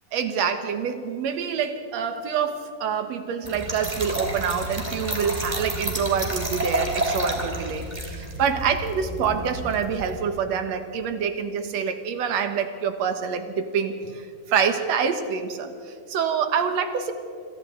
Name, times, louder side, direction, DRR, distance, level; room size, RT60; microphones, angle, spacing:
voice 1, 0.1-17.1, right 7 dB, 60° right, 7 dB, 2.3 m, -26 dB
Trickle dribble / Fill (with liquid), 3.4-10.2, right 1 dB, 15° right, 2.8 m, -30 dB
27.0 x 26.5 x 3.9 m, 2.4 s
omnidirectional pair, 3.7 m